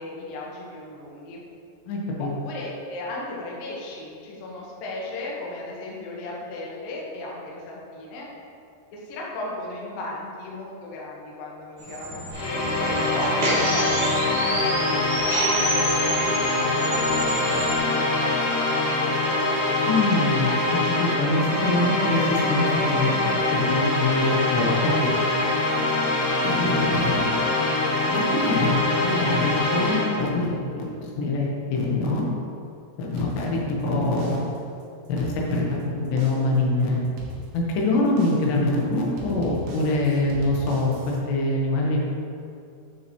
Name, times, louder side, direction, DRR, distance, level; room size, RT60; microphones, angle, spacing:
voice 1, 0.0-1.4 2.2-8.3 8.9-19.3 33.0-33.3, left 2 dB, 70° left, -4 dB, 2.7 m, -36 dB
voice 2, 1.9-2.3 19.9-25.3 26.4-27.4 28.1-30.9 31.1-32.3 33.0-34.4 35.1-37.0 37.5-42.0, left 2 dB, 90° left, -2 dB, 3.3 m, -24 dB
sound 1, 11.8-17.8, right 1 dB, 60° right, 3.4 m, -29 dB
sound 2, 12.3-30.3, left 2 dB, 55° left, 2.5 m, -24 dB
sound 3, 33.2-33.8 34.2-34.7 35.1-35.8 36.2-36.7 37.2-37.8 38.2-38.7 39.2-41.2, right 1 dB, 85° right, 3.1 m, -39 dB
9.7 x 6.7 x 3.0 m, 2.5 s
omnidirectional pair, 4.8 m